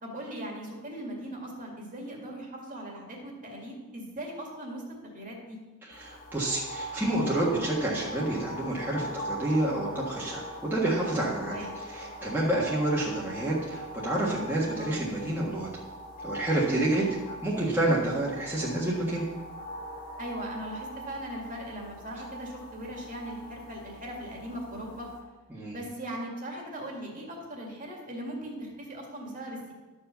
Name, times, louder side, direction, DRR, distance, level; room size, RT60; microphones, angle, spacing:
voice 1, 0.0-4.8 5.1-5.6 11.5-11.7 14.8-14.9 16.9-17.2 20.2-25.1 25.7-29.7, right 1 dB, 35° right, -1 dB, 2.1 m, -39 dB
voice 2, 5.8-15.7 16.2-19.2 25.5-25.8, right 1 dB, 10° right, -6 dB, 1.5 m, -29 dB
sound 1, 5.9-25.2, equal, 40° left, 1.9 m, -41 dB
12.0 x 4.8 x 6.8 m, 1.2 s
head